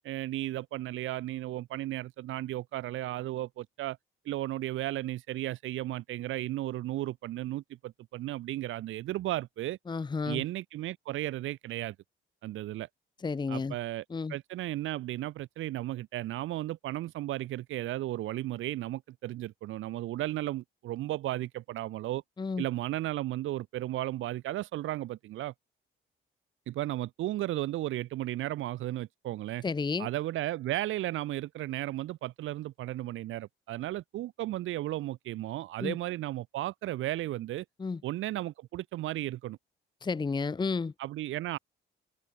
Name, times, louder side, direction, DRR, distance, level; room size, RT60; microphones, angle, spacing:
voice 1, 0.0-4.0 4.2-9.8 10.3-11.9 12.4-12.9 13.5-14.0 14.3-22.2 22.6-25.5 26.7-29.6 30.0-37.6 38.0-39.6 41.0-41.6, right 15 dB, 80° right, 1.3 m, -34 dB
voice 2, 9.9-10.4 13.2-13.8 14.1-14.4 22.4-22.6 29.6-30.1 35.8-36.0 37.8-38.0 40.0-40.9, left 4 dB, 20° left, 0.8 m, -31 dB
cardioid pair, 90°, 20 cm